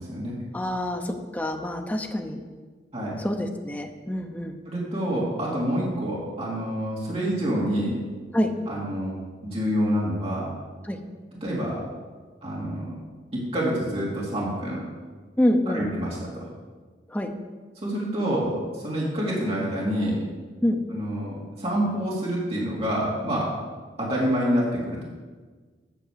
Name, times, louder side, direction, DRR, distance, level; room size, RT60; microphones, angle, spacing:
voice 1, 0.0-0.4 2.9-3.1 4.7-8.0 8.7-10.5 11.4-11.8 12.4-12.9 13.3-14.8 15.7-16.5 17.8-20.2 20.9-23.5 24.0-25.0, equal, 35° right, -6 dB, 2.7 m, -27 dB
voice 2, 0.5-2.4 3.2-4.5 8.3-8.5 10.8-11.0 15.4-15.8 17.1-17.3 20.6-20.8, left 1 dB, 10° left, 3 dB, 0.8 m, -26 dB
9.1 x 6.8 x 6.9 m, 1.4 s
head